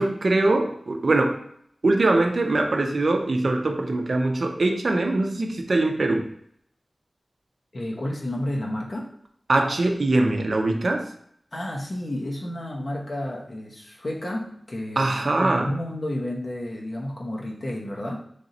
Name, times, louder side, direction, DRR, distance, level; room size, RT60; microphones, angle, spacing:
voice 1, 0.0-1.4 1.8-6.3 9.5-11.1 15.0-15.7, right 2 dB, 75° right, 4 dB, 0.5 m, -22 dB
voice 2, 7.7-9.1 11.5-18.2, left 1 dB, 65° left, -2 dB, 0.8 m, -31 dB
3.3 x 2.7 x 4.1 m, 0.68 s
cardioid pair, 40°, 0 cm